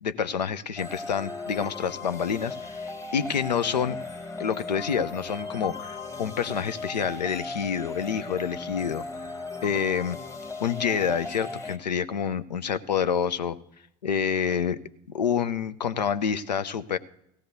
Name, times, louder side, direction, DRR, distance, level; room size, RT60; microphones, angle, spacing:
voice 1, 0.0-4.0 4.4-9.0 9.6-10.2 10.6-13.6 14.0-14.8 15.1-17.0, left 7 dB, 85° left, 15 dB, 0.5 m, -28 dB
sound 1, 0.8-11.8, left 3 dB, 15° left, 1.2 m, -37 dB
17.5 x 15.0 x 2.7 m, 0.80 s
figure-of-eight pair, 75°, 21 cm